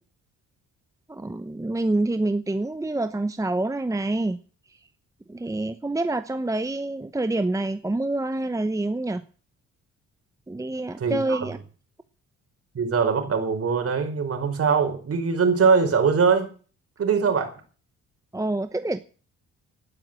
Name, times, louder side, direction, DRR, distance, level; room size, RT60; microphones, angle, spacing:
voice 1, 1.1-4.4 5.3-9.2 10.5-11.6 18.3-19.0, right 2 dB, 10° right, 10 dB, 0.9 m, -27 dB
voice 2, 11.0-11.5 12.7-16.5 17.0-17.5, right 5 dB, 50° right, 6 dB, 5.0 m, -22 dB
12.5 x 10.5 x 9.0 m, 0.40 s
cardioid pair, 90°, 30 cm